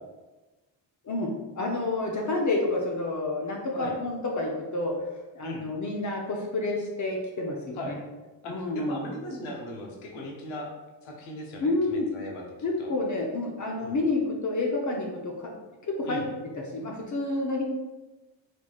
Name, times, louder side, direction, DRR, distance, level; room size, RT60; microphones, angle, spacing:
voice 1, 1.0-5.0 5.3-8.0 8.5-9.1 11.6-12.1 12.6-15.3 15.8-16.2 16.7-17.6, left 2 dB, 40° left, -1 dB, 0.7 m, -29 dB
voice 2, 8.4-10.7 11.0-12.4 12.8-12.9 13.8-14.0 16.1-16.2, left 1 dB, 90° left, 0 dB, 0.9 m, -38 dB
4.3 x 3.1 x 2.4 m, 1.1 s
cardioid pair, 75°, 45 cm